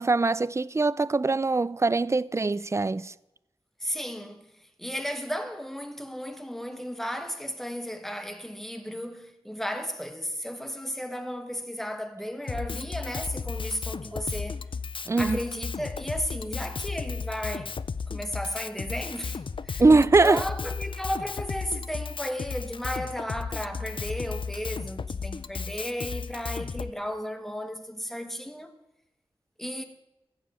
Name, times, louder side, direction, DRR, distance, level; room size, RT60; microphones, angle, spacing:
voice 1, 0.0-3.1 15.1-15.4 19.8-20.4, right 3 dB, 30° right, 0.3 m, -22 dB
voice 2, 3.8-14.6 15.2-17.7 18.1-19.8 20.2-28.7 29.6-29.8, equal, 5° left, 1.3 m, -34 dB
Drum kit, 12.5-26.9, left 5 dB, 55° left, 0.4 m, -34 dB
14.5 x 5.4 x 8.2 m
wide cardioid pair, 55°, 10 cm